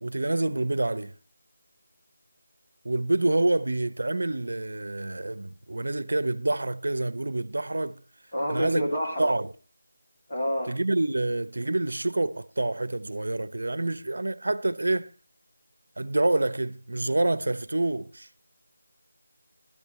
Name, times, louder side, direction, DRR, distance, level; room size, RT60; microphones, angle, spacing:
voice 1, 0.0-1.1 2.8-8.0 8.5-9.5 10.7-15.1 16.0-18.3, right 2 dB, 70° right, 0.8 m, -27 dB
voice 2, 8.3-9.3 10.3-10.7, equal, 20° left, 2.8 m, -28 dB
17.0 x 12.5 x 3.2 m
figure-of-eight pair, 175°, 0 cm